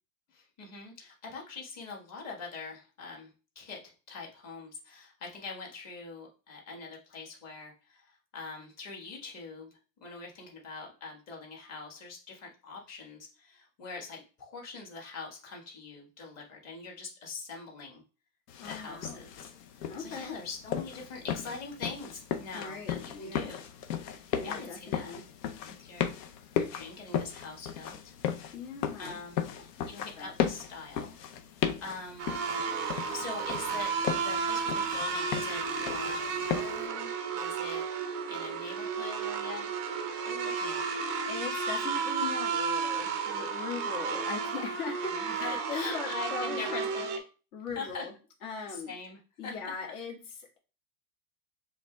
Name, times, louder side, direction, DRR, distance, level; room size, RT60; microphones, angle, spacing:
voice 1, 0.3-9.7 10.0-18.0 18.6-23.6 24.0-25.1 25.6-26.1 26.5-28.1 29.0-31.1 31.5-32.4 33.1-37.8 38.3-39.7 40.3-40.8 45.2-47.2 47.7-48.0 48.7-49.5, left 4 dB, 30° left, 0 dB, 1.6 m, -43 dB
sound 1, 18.5-36.9, left 8 dB, 75° left, 0.8 m, -36 dB
voice 2, 18.6-19.2 19.9-20.4 22.5-23.5 24.0-25.2 28.5-29.2 29.8-30.3 40.5-40.6 41.3-47.1 47.5-48.1 48.4-48.9 49.4-50.6, left 5 dB, 60° left, -1 dB, 1.9 m, -40 dB
sound 2, 32.2-47.2, right 5 dB, 25° right, 0.4 m, -33 dB
6.8 x 3.3 x 2.3 m, 0.35 s
supercardioid pair, 145°, 49 cm